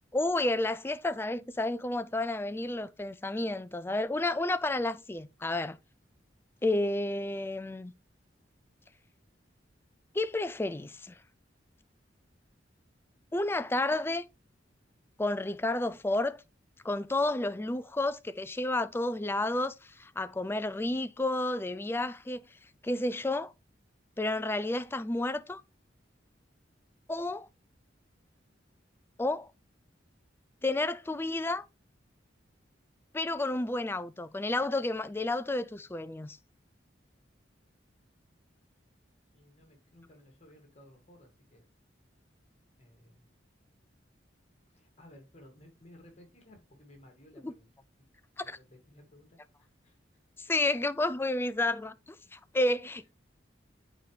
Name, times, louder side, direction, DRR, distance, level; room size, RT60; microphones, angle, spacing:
voice 1, 0.1-5.8 6.6-7.9 10.1-11.2 13.3-14.3 15.2-16.4 16.8-22.4 22.8-23.5 24.2-25.6 27.1-27.5 29.2-29.5 30.6-31.7 33.1-36.4 47.4-47.5 48.4-48.6 50.4-53.1, left 2 dB, 10° left, 0.4 m, -31 dB
voice 2, 39.3-41.6 42.8-43.3 44.7-47.7 48.0-48.1 48.4-50.2, left 1 dB, 35° left, 2.2 m, -57 dB
8.2 x 4.8 x 3.2 m
head